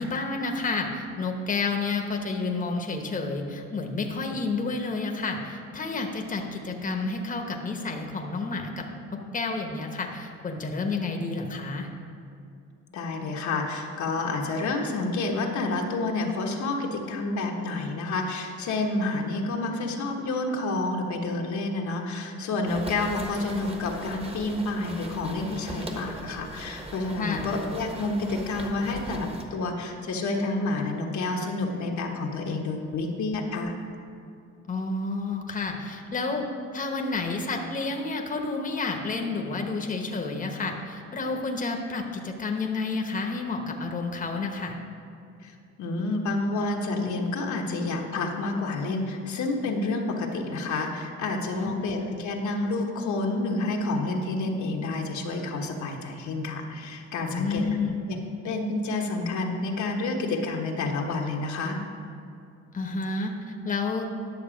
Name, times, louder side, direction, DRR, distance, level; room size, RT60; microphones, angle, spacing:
voice 1, 0.0-8.8 9.3-11.9 27.2-27.4 34.7-36.5 36.7-44.7 51.5-51.9 57.3-58.0 62.7-63.3 63.6-64.1, left 3 dB, 25° left, 3 dB, 1.0 m, -30 dB
voice 2, 12.9-33.7 45.4-57.7 58.1-58.2 58.4-61.8, left 2 dB, 70° left, 1 dB, 1.2 m, -29 dB
sound 1, 22.7-29.4, right 1 dB, 20° right, 1.2 m, -40 dB
10.5 x 6.6 x 5.0 m, 2.5 s
cardioid pair, 90°, 30 cm